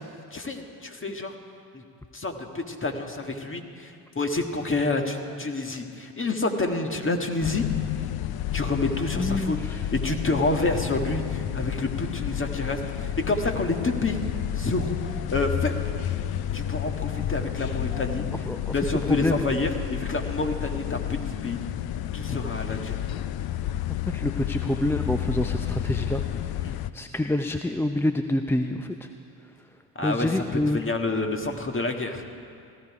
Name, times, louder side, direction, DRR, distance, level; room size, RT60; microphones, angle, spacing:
voice 1, 0.3-1.3 1.7-1.8 2.1-7.6 8.5-9.6 9.9-14.2 14.6-15.8 16.5-18.3 18.7-21.6 22.1-23.0 26.6-26.8 30.0-30.3 30.7-32.2, left 2 dB, 25° left, 4 dB, 1.8 m, -28 dB
sound 1, 7.4-26.9, left 11 dB, 50° left, 0.6 m, -31 dB
voice 2, 9.2-9.8 18.3-18.8 19.1-19.5 24.0-26.2 26.9-29.1 30.0-30.8, left 1 dB, 5° left, 7 dB, 0.6 m, -27 dB
17.5 x 14.0 x 4.9 m, 2.4 s
hypercardioid pair, 60°, 46 cm